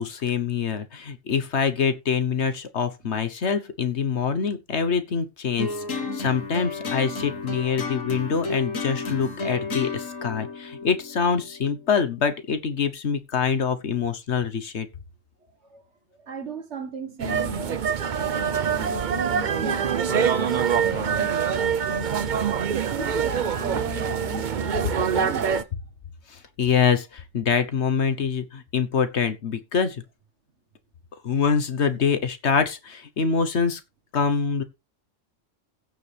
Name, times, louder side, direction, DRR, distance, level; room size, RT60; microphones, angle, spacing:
voice 1, 0.0-14.9 26.3-30.0 31.2-33.8 34.1-34.6, left 6 dB, 60° left, 1.3 m, -25 dB
sound 1, 5.6-12.0, left 3 dB, 80° left, 1.9 m, -32 dB
voice 2, 16.2-17.9 18.2-22.3 22.7-25.7, right 1 dB, 60° right, 1.7 m, -37 dB
sound 2, 17.2-25.6, right 7 dB, 45° right, 0.7 m, -25 dB
15.5 x 6.9 x 3.4 m
omnidirectional pair, 1.3 m